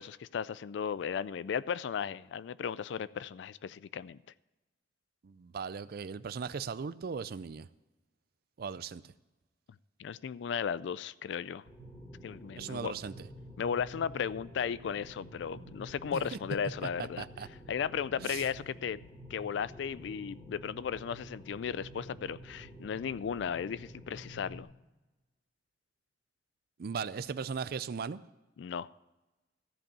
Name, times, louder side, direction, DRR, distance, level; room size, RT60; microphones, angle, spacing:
voice 1, 0.0-4.2 10.0-11.6 12.2-12.9 13.6-17.2 17.7-19.0 19.3-24.7 28.6-28.9, left 7 dB, 65° left, 19 dB, 0.3 m, -35 dB
voice 2, 5.2-7.7 8.6-9.0 12.6-13.1 16.1-16.4 17.2-17.5 18.2-18.4 26.8-28.2, right 5 dB, 55° right, 16 dB, 0.4 m, -38 dB
sound 1, 11.6-24.6, equal, 20° left, 2.5 m, -49 dB
14.0 x 5.3 x 8.6 m, 1.1 s
head